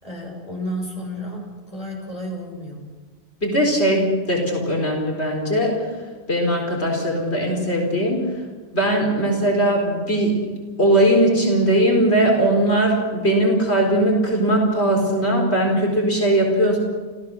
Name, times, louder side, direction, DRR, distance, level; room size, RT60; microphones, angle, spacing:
voice 1, 0.0-2.9, equal, 35° left, 0 dB, 6.2 m, -32 dB
voice 2, 3.4-5.9 6.3-8.2 8.7-10.4 10.8-16.8, right 1 dB, 90° left, 0 dB, 4.6 m, -19 dB
30.0 x 15.0 x 6.4 m, 1.3 s
omnidirectional pair, 1.1 m